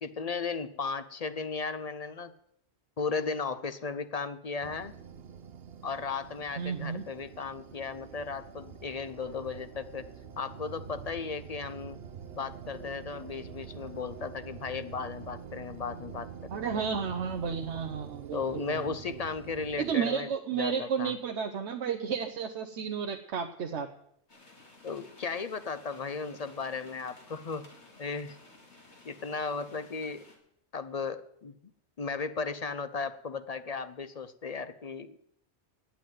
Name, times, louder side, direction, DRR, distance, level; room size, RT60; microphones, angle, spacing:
voice 1, 0.0-2.3 3.0-4.9 5.8-10.0 10.4-12.0 12.3-16.8 18.3-21.1 24.8-27.7 28.0-28.4 29.0-30.2 30.7-31.6 32.0-35.3, left 5 dB, 45° left, 12 dB, 0.5 m, -36 dB
sound 1, 4.6-20.0, right 7 dB, 65° right, 0.9 m, -46 dB
voice 2, 6.6-7.0 16.5-19.2 19.8-23.9, right 7 dB, 85° right, 6 dB, 1.1 m, -32 dB
sound 2, 24.3-30.3, left 2 dB, 85° left, 2.8 m, -55 dB
9.2 x 8.5 x 9.2 m, 0.74 s
omnidirectional pair, 1.1 m